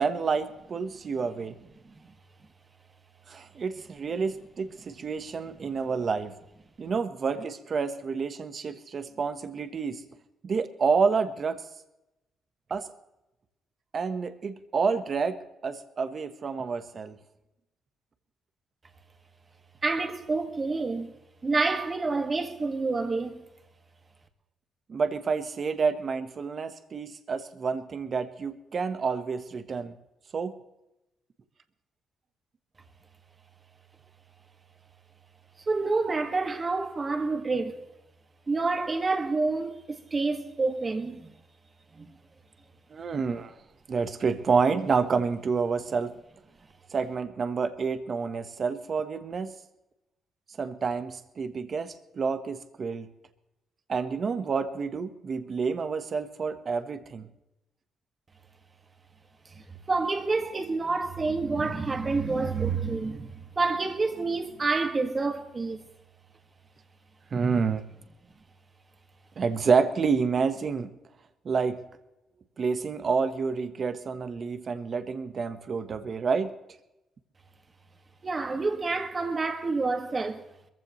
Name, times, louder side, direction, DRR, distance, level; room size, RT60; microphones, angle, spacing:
voice 1, 0.0-1.6 3.3-6.3 6.8-10.0 10.4-11.6 12.7-12.9 13.9-17.2 24.9-29.9 30.3-30.6 42.9-43.5 43.9-46.1 46.9-49.5 50.6-53.1 53.9-57.3 67.3-67.8 69.4-70.9 71.4-71.8 72.6-76.5, right 5 dB, 45° right, 1.2 m, -28 dB
voice 2, 19.8-21.1 21.4-23.5 35.7-37.8 38.5-41.3 42.0-42.1 59.5-65.8 78.2-80.4, right 3 dB, 30° right, 1.8 m, -28 dB
21.5 x 15.0 x 3.2 m
cardioid pair, 90°, 0 cm